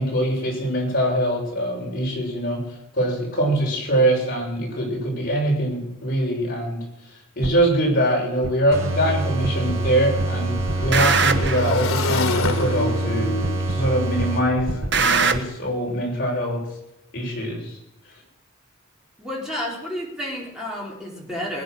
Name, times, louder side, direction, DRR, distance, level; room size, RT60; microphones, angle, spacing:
voice 1, 0.0-6.8 7.4-16.6 17.1-17.8, right 1 dB, 45° left, -2 dB, 6.3 m, -23 dB
sound 1, 7.4-7.6 8.4-8.5 9.4-9.9 10.2-11.7 12.4-12.5 13.4-13.9 14.2-15.4, right 4 dB, 55° right, 1.2 m, -22 dB
Motorcycle / Engine, 7.9-8.0 8.3-15.5, left 4 dB, 90° left, 1.4 m, -31 dB
sound 2, 8.7-14.8, right 2 dB, 75° right, 4.1 m, -26 dB
voice 2, 19.2-21.6, left 1 dB, 5° right, -4 dB, 4.1 m, -31 dB
21.0 x 9.4 x 6.4 m, 0.85 s
head